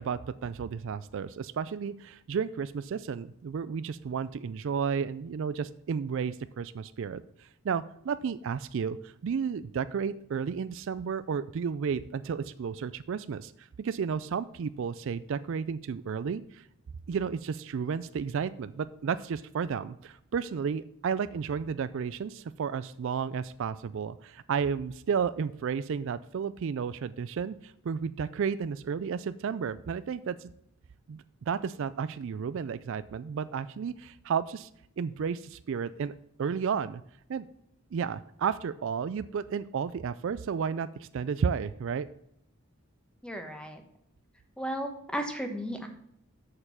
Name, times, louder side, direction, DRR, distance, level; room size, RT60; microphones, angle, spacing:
voice 1, 0.0-16.7 17.1-30.5 31.1-34.7 35.0-36.1 36.4-37.0 37.3-37.5 37.9-42.1, right 6 dB, 60° right, 15 dB, 0.3 m, -32 dB
voice 2, 43.2-43.8 44.6-45.9, equal, 5° left, 5 dB, 1.0 m, -34 dB
6.7 x 6.7 x 5.6 m, 0.73 s
head